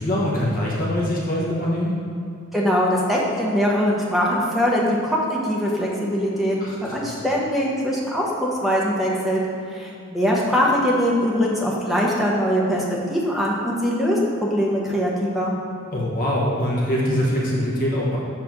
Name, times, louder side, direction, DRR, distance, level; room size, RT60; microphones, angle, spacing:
voice 1, 0.0-1.9 6.6-7.1 15.9-18.2, equal, 40° left, -5 dB, 1.1 m, -23 dB
voice 2, 2.5-9.4 9.7-12.8 13.1-15.5, equal, ahead, -4 dB, 1.0 m, -22 dB
7.4 x 3.4 x 5.9 m, 2.6 s
head